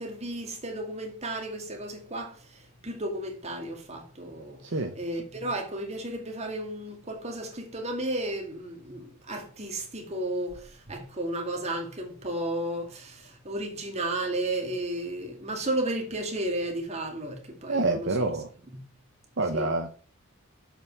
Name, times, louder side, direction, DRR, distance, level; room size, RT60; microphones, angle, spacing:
voice 1, 0.0-4.6 5.0-18.1 19.5-19.7, right 1 dB, 30° right, 2.2 m, -33 dB
voice 2, 4.6-5.0 17.7-18.5 19.4-19.9, right 2 dB, 55° right, 1.0 m, -27 dB
7.5 x 5.5 x 7.0 m
head